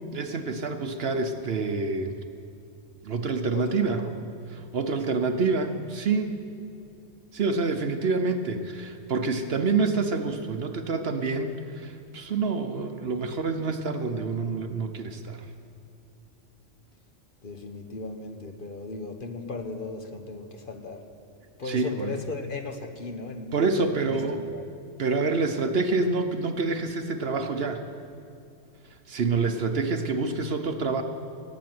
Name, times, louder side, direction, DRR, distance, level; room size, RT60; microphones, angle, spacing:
voice 1, 0.1-2.2 3.0-4.1 4.5-6.4 7.3-15.4 21.6-22.2 23.5-24.4 25.0-27.8 29.1-31.0, right 4 dB, 55° right, 7 dB, 1.0 m, -27 dB
voice 2, 3.5-4.2 17.4-21.0 21.6-23.6 24.0-24.6, left 3 dB, 45° left, 5 dB, 1.1 m, -37 dB
17.5 x 7.5 x 9.4 m, 2.5 s
omnidirectional pair, 1.3 m